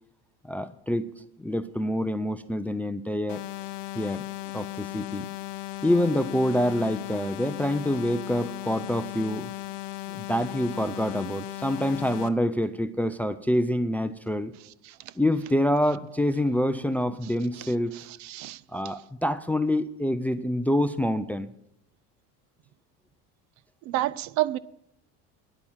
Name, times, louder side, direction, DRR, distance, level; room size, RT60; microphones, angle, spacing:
voice 1, 0.4-1.1 1.4-3.4 4.0-4.3 4.5-5.3 5.8-9.5 10.1-14.5 15.2-17.9 18.7-21.5, left 1 dB, 5° left, 0.3 m, -26 dB
sound 1, 3.3-12.3, left 15 dB, 85° left, 0.8 m, -37 dB
voice 2, 17.9-18.6 23.9-24.6, right 15 dB, 60° right, 0.5 m, -29 dB
10.0 x 8.7 x 7.3 m
cardioid pair, 115°, 33 cm